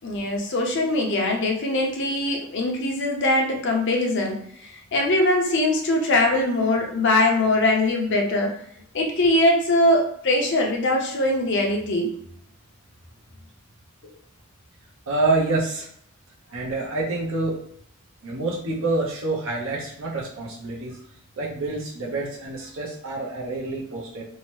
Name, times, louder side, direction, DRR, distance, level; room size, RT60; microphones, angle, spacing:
voice 1, 0.0-8.5 8.9-12.1, left 1 dB, 55° left, 1 dB, 0.6 m, -22 dB
voice 2, 15.1-15.9 16.5-17.6 18.2-21.0 21.4-24.2, right 2 dB, 65° right, -4 dB, 0.6 m, -27 dB
2.7 x 2.1 x 3.0 m, 0.70 s
head